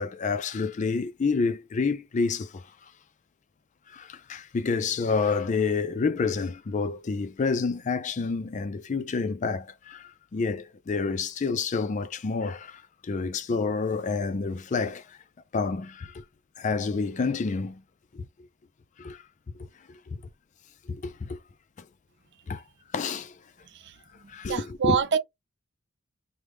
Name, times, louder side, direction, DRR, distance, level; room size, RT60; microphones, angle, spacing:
voice 1, 0.0-2.7 3.9-15.2 15.5-16.2 16.6-17.8 18.1-18.5 19.0-19.2 19.5-20.2 20.8-21.4 21.8-21.9 22.5-22.6 22.9-23.4 24.3-25.0, left 4 dB, 35° left, 0.3 m, -29 dB
voice 2, 23.6-25.2, right 6 dB, 55° right, 0.5 m, -28 dB
3.3 x 2.1 x 3.1 m
head